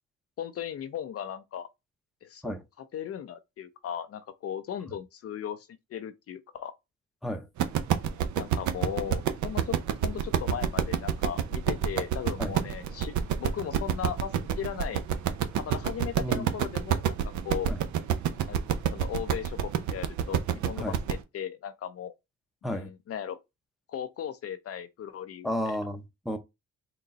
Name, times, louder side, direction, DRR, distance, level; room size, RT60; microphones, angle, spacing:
voice 1, 0.4-1.7 2.2-6.7 8.4-9.8 10.0-15.0 15.6-17.2 17.4-17.7 18.5-18.6 18.9-22.1 22.7-23.4 23.9-25.8, left 9 dB, 50° left, 0.5 m, -37 dB
sound 1, 7.6-21.2, right 9 dB, 75° right, 0.6 m, -28 dB
voice 2, 16.2-16.5 17.7-17.8 20.8-21.0 22.6-22.9 25.4-26.4, equal, ahead, 0.6 m, -32 dB
4.0 x 2.2 x 3.8 m
cardioid pair, 90°, 30 cm